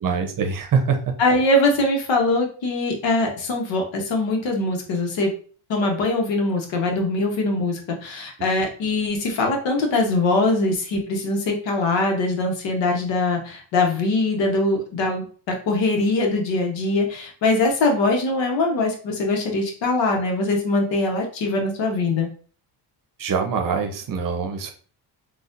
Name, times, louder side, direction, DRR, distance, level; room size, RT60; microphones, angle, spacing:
voice 1, 0.0-1.1 23.2-24.7, right 5 dB, 45° right, 5 dB, 0.7 m, -24 dB
voice 2, 1.2-5.3 5.7-22.3, left 2 dB, 70° left, 2 dB, 1.1 m, -22 dB
4.0 x 2.4 x 2.5 m, 0.42 s
cardioid pair, 105°, 46 cm